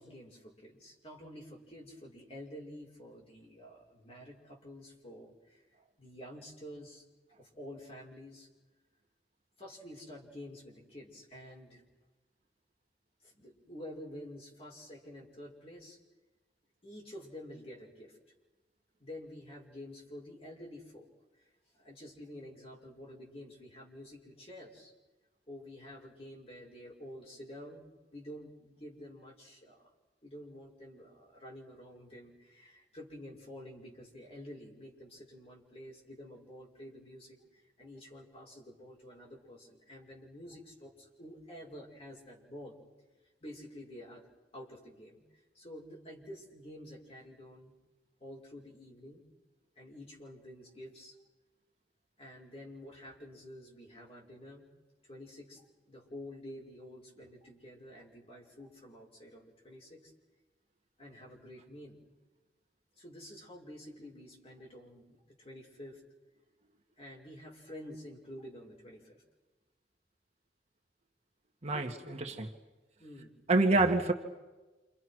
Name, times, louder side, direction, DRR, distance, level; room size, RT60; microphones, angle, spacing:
voice 1, 0.0-5.6 6.0-7.0 7.4-8.5 9.6-11.8 13.2-16.0 16.8-18.2 19.0-21.1 21.8-24.9 25.5-27.9 28.1-29.9 30.2-42.7 43.4-44.3 44.5-45.2 45.5-47.7 48.2-49.2 49.7-51.2 52.2-54.7 55.0-60.1 61.0-61.9 63.0-66.0 67.0-69.2 71.7-72.2 73.0-73.4, left 1 dB, 35° left, 6.4 m, -49 dB
voice 2, 71.6-72.5 73.5-74.1, right 2 dB, 40° right, 1.7 m, -27 dB
29.0 x 27.5 x 6.3 m
head